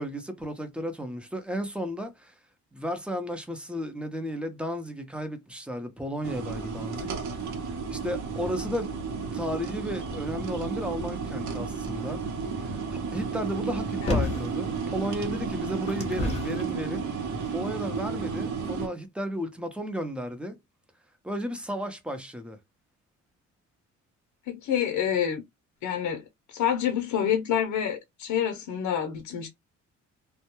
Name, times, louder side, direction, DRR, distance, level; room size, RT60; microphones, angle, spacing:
voice 1, 0.0-2.3 2.7-7.1 7.7-9.0 9.3-12.2 12.6-12.8 13.1-17.1 17.5-20.6 21.2-22.6, equal, 5° right, 0.7 m, -33 dB
sound 1, 6.2-18.9, right 5 dB, 70° right, 0.9 m, -33 dB
sound 2, 14.1-14.6 15.3-16.7 17.5-17.6, left 3 dB, 20° left, 1.0 m, -30 dB
voice 2, 24.5-25.4 25.8-26.2 26.5-29.5, left 9 dB, 75° left, 0.6 m, -27 dB
2.2 x 2.1 x 3.0 m
cardioid pair, 90°, 30 cm